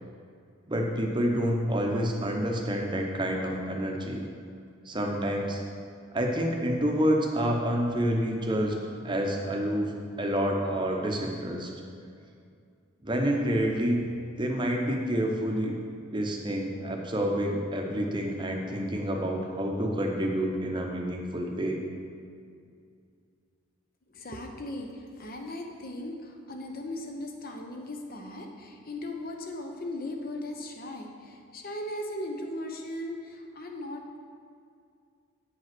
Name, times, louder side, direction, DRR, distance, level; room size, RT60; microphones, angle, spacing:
voice 1, 0.7-4.2 4.9-5.6 6.1-8.7 9.0-11.7 13.0-14.0 14.4-15.8 16.1-21.8, equal, 20° right, 1 dB, 0.8 m, -28 dB
voice 2, 24.1-34.2, left 1 dB, 45° left, 3 dB, 0.8 m, -38 dB
8.5 x 5.3 x 6.0 m, 2.3 s
head